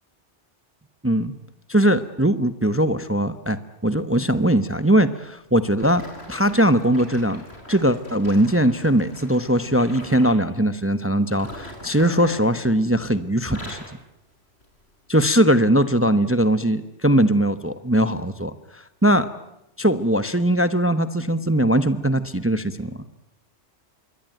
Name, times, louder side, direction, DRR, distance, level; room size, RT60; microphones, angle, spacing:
voice 1, 1.7-6.0 6.3-7.4 7.7-13.8 15.1-19.3 19.8-23.1, right 1 dB, 10° right, 13 dB, 0.9 m, -20 dB
sound 1, 5.8-10.4 11.3-13.1 13.4-14.0 14.6-14.8 15.5-15.6, left 1 dB, 60° left, 5.6 m, -42 dB
26.5 x 23.0 x 9.2 m, 0.85 s
omnidirectional pair, 1.2 m